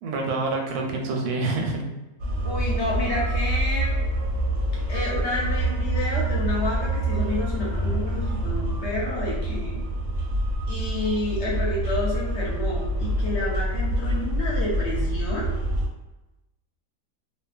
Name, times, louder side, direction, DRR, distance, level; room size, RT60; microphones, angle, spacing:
voice 1, 0.0-1.8, right 3 dB, 90° right, 1 dB, 1.1 m, -27 dB
sound 1, 2.2-15.9, right 1 dB, 65° right, 0.9 m, -26 dB
voice 2, 2.4-4.0 4.9-9.8 10.7-15.5, left 2 dB, 60° left, -4 dB, 0.8 m, -30 dB
sound 2, 2.5-10.1, left 2 dB, 15° right, 0.5 m, -34 dB
2.5 x 2.3 x 2.3 m, 1.0 s
omnidirectional pair, 1.5 m